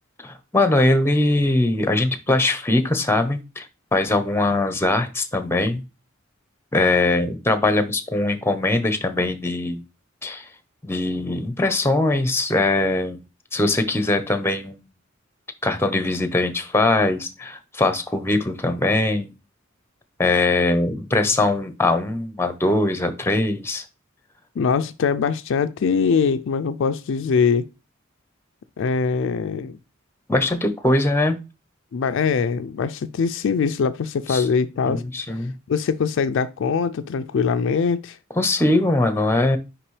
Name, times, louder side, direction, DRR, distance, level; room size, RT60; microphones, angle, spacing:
voice 1, 0.2-3.6 3.9-5.8 6.7-9.8 10.2-10.5 10.8-13.2 13.5-14.8 15.6-19.3 20.2-23.8 30.3-31.4 34.3-34.4 34.9-35.5 38.4-39.6, left 2 dB, 10° left, 0.7 m, -21 dB
voice 2, 24.6-27.7 28.8-29.8 31.9-35.0 35.7-38.2, left 5 dB, 65° left, 0.4 m, -22 dB
5.8 x 5.1 x 3.2 m
head